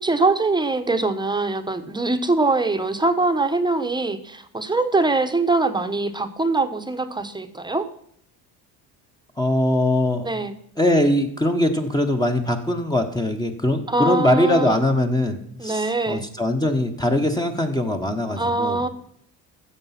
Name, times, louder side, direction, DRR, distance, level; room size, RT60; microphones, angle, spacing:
voice 1, 0.0-7.9 10.2-10.6 13.9-14.8 15.6-16.2 18.4-18.9, right 3 dB, 10° right, 8 dB, 1.1 m, -23 dB
voice 2, 9.4-10.3 10.8-18.8, left 1 dB, 10° left, 4 dB, 1.2 m, -21 dB
15.0 x 6.8 x 5.9 m, 0.68 s
cardioid pair, 115°, 40 cm